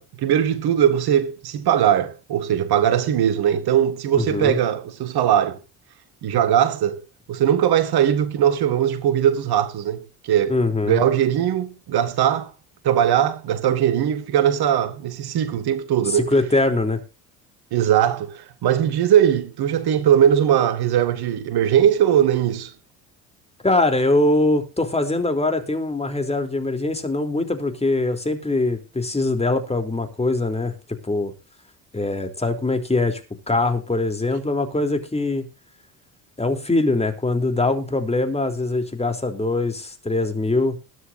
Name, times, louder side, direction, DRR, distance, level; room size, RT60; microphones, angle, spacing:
voice 1, 0.0-5.6 6.2-7.0 7.3-10.6 10.9-12.5 12.8-16.3 17.7-22.7, right 10 dB, 50° right, 2.0 m, -20 dB
voice 2, 4.2-4.6 10.5-11.0 16.1-17.0 23.6-30.7 31.0-31.3 31.9-33.2 33.5-35.4 36.4-40.8, left 2 dB, 15° left, 3.4 m, -22 dB
21.5 x 9.8 x 2.7 m
figure-of-eight pair, 55°, 48 cm